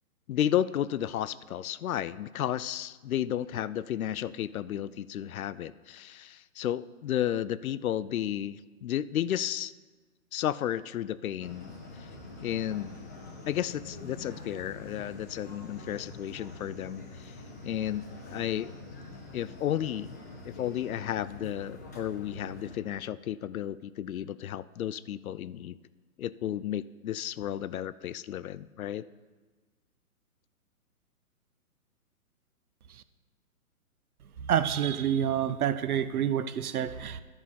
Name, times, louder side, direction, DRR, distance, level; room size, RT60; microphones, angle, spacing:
voice 1, 0.3-9.7 10.3-11.7 12.4-13.0 13.5-17.3 17.6-18.7 19.3-20.1 20.4-25.8 26.2-29.0, left 11 dB, 70° left, 17 dB, 0.5 m, -33 dB
sound 1, 11.4-22.8, left 2 dB, 15° left, 0.4 m, -45 dB
voice 2, 34.5-37.2, right 9 dB, 75° right, 14 dB, 0.7 m, -28 dB
12.5 x 4.9 x 5.6 m, 1.4 s
hypercardioid pair, 145°, 45 cm